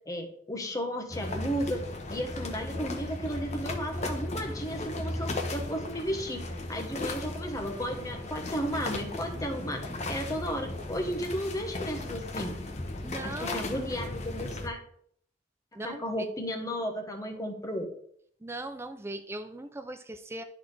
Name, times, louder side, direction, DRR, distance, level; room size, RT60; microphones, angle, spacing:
voice 1, 0.1-1.8 2.1-6.4 6.7-9.8 10.1-12.6 13.2-14.8 15.8-17.9, equal, 20° left, 3 dB, 1.1 m, -34 dB
sound 1, 1.1-14.7, left 2 dB, 35° left, 1.0 m, -36 dB
voice 2, 13.0-13.7 15.8-16.0 18.4-20.4, right 1 dB, 15° right, 8 dB, 0.4 m, -39 dB
11.0 x 4.1 x 3.3 m, 0.66 s
head